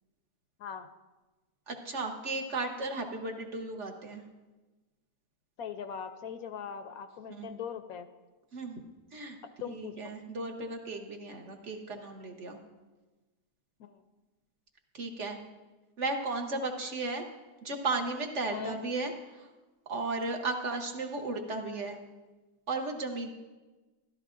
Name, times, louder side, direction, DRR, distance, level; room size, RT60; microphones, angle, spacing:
voice 1, 1.7-4.2 7.3-7.5 8.5-9.4 9.6-12.6 14.9-15.4 16.0-17.2 17.6-19.5 19.9-22.0 22.7-23.3, right 3 dB, 55° right, 4 dB, 1.0 m, -35 dB
voice 2, 5.6-8.1 9.6-10.1 13.8-14.0 18.5-18.8, left 7 dB, 70° left, 9 dB, 0.9 m, -40 dB
13.5 x 12.5 x 2.5 m, 1.2 s
omnidirectional pair, 1.7 m